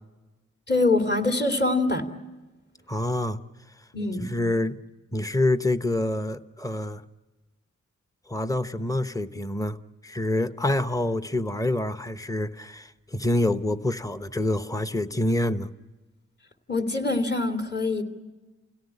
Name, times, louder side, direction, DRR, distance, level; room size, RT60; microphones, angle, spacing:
voice 1, 0.7-2.0 3.9-4.3 16.7-18.0, left 2 dB, 35° left, 2.8 m, -24 dB
voice 2, 2.9-3.4 4.2-4.8 5.1-7.0 8.3-9.8 10.0-15.7, left 1 dB, 10° left, 0.9 m, -26 dB
28.5 x 17.5 x 9.8 m
cardioid pair, 60°, 29 cm